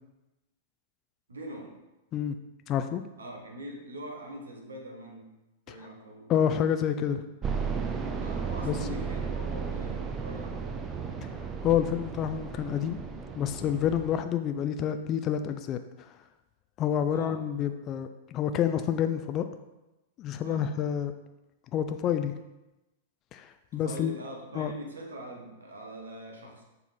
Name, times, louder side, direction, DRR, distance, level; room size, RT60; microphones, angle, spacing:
voice 1, 1.3-1.8 3.2-5.4 5.7-6.3 8.2-11.0 17.1-17.5 20.4-20.7 23.7-26.6, equal, 80° right, 1 dB, 1.3 m, -43 dB
voice 2, 2.7-3.0 6.3-7.2 8.6-8.8 11.6-13.0 13.4-15.8 16.8-19.4 20.2-21.1 21.7-22.3 23.3-24.2 24.6-24.7, left 9 dB, 35° left, 8 dB, 0.4 m, -28 dB
sound 1, 7.4-14.2, right 5 dB, 25° right, 0.7 m, -34 dB
7.1 x 4.0 x 4.2 m, 1.0 s
figure-of-eight pair, 100°, 0 cm